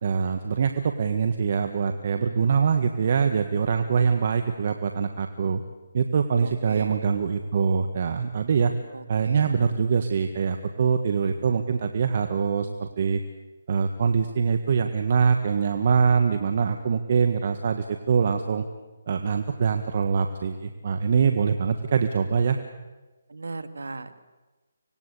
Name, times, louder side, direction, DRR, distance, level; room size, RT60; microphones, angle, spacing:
voice 1, 0.0-5.6 5.9-8.7 9.1-13.2 13.7-18.6 19.1-22.6, right 6 dB, 50° right, 6 dB, 1.6 m, -24 dB
voice 2, 6.4-7.0 8.9-9.5 23.3-24.2, right 3 dB, 80° right, 10 dB, 2.0 m, -37 dB
25.5 x 19.5 x 8.4 m, 1.2 s
figure-of-eight pair, 150°, 0 cm